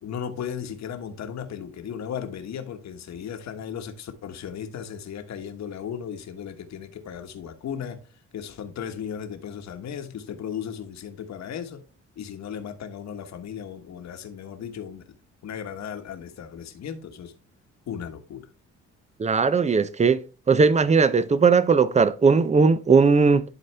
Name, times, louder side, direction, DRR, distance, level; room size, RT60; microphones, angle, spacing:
voice 1, 0.0-8.0 8.3-11.8 12.2-15.0 15.4-17.3 17.9-18.5, left 8 dB, 60° left, 1.3 m, -36 dB
voice 2, 19.2-20.2 20.5-23.4, right 5 dB, 25° right, 0.6 m, -18 dB
11.0 x 4.2 x 3.4 m
cardioid pair, 90°, 30 cm